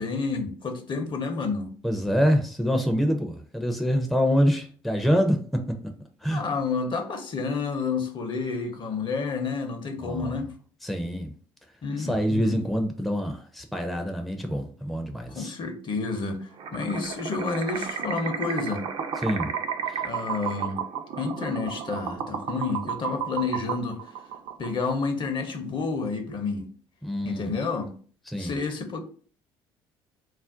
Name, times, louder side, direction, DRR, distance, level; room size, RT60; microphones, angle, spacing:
voice 1, 0.0-1.7 6.3-10.5 11.8-12.6 15.3-18.9 20.0-20.8 21.2-24.0 24.6-26.7 27.2-27.9 28.4-29.0, left 4 dB, 45° left, 0.7 m, -30 dB
voice 2, 1.8-5.6 6.2-6.4 10.0-10.3 10.8-11.3 12.0-15.5 19.2-19.5 27.0-27.5 28.3-28.5, equal, ahead, 0.5 m, -25 dB
sound 1, 16.6-25.1, right 7 dB, 50° right, 0.5 m, -33 dB
2.5 x 2.1 x 3.7 m
hypercardioid pair, 55°, 12 cm